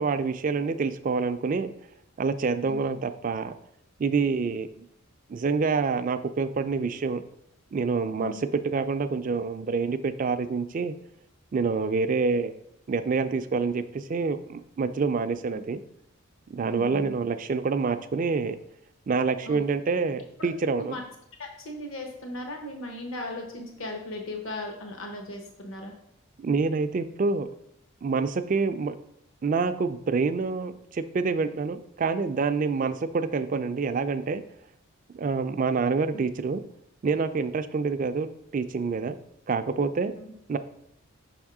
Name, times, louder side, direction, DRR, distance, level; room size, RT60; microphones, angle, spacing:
voice 1, 0.0-1.7 2.2-3.5 4.0-4.9 5.3-7.2 7.7-10.9 11.5-12.6 12.9-15.8 16.5-18.6 19.1-20.9 26.4-27.5 28.0-28.9 29.4-34.4 35.1-36.6 37.0-38.3 38.5-39.2 39.5-40.1 40.5-40.6, right 4 dB, 40° right, 10 dB, 0.3 m, -27 dB
voice 2, 16.6-17.1 19.5-19.6 20.4-20.5 20.8-21.0 21.4-25.9 36.1-36.2, left 1 dB, 70° left, 3 dB, 0.9 m, -37 dB
5.9 x 3.6 x 4.8 m, 0.75 s
head